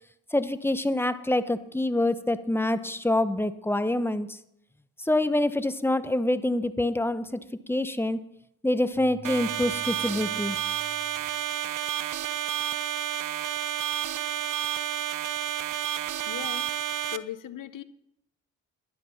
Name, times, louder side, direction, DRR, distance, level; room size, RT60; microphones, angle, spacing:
voice 1, 0.3-4.4 5.0-8.2 8.6-10.6, left 1 dB, 5° left, 13 dB, 1.0 m, -26 dB
sound 1, 8.9-11.4, left 3 dB, 75° left, 3.3 m, -48 dB
sound 2, 9.2-17.2, right 11 dB, 55° right, 0.7 m, -30 dB
voice 2, 16.3-16.7 17.1-17.8, left 11 dB, 60° left, 15 dB, 0.9 m, -38 dB
11.0 x 10.5 x 5.8 m, 0.79 s
hypercardioid pair, 40°, 37 cm